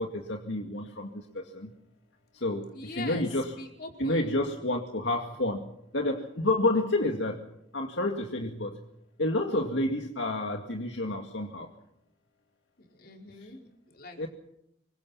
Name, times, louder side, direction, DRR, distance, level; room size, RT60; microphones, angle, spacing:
voice 1, 0.0-1.7 2.3-2.7 3.0-3.6 4.0-7.4 7.7-8.8 9.2-11.7 14.2-14.3, left 2 dB, 70° left, 3 dB, 2.2 m, -29 dB
voice 2, 2.7-3.3 3.6-4.3 12.8-14.3, left 2 dB, 50° left, 2 dB, 4.9 m, -43 dB
26.5 x 23.5 x 5.8 m, 0.77 s
head